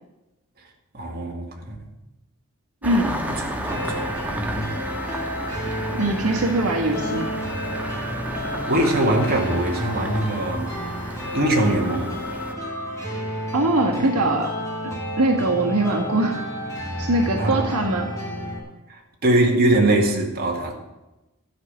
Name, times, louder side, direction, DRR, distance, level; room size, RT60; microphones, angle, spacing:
voice 1, 0.9-1.9 3.9-4.0 4.4-4.7 8.7-10.7 11.3-12.2 13.9-14.1 17.4-17.7 18.9-20.7, right 1 dB, 45° right, 0 dB, 2.1 m, -22 dB
Engine starting, 2.8-12.5, equal, 5° right, 1.4 m, -32 dB
voice 2, 2.8-3.2 5.9-7.3 13.5-14.5 15.2-16.4 17.0-18.1, right 2 dB, 75° right, 0 dB, 1.7 m, -22 dB
sound 1, 3.6-18.6, equal, 15° left, 3.1 m, -31 dB
12.5 x 6.0 x 9.4 m, 1.0 s
head